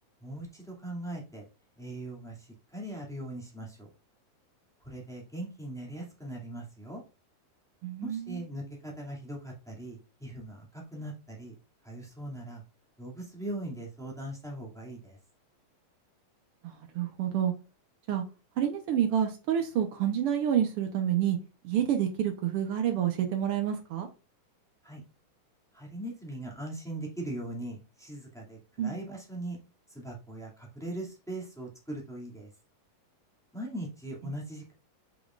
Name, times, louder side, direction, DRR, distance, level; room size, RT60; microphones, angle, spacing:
voice 1, 0.2-1.4 1.8-3.9 4.8-7.0 8.0-11.5 11.8-12.6 13.0-15.2 24.8-25.0 25.7-29.6 29.9-32.5 33.5-34.7, right 1 dB, ahead, 1.7 m, -40 dB
voice 2, 7.8-8.4 16.6-17.5 18.1-18.2 18.6-21.4 21.6-24.1 28.8-29.0, right 9 dB, 85° right, 1.2 m, -28 dB
8.4 x 5.3 x 2.5 m
omnidirectional pair, 3.9 m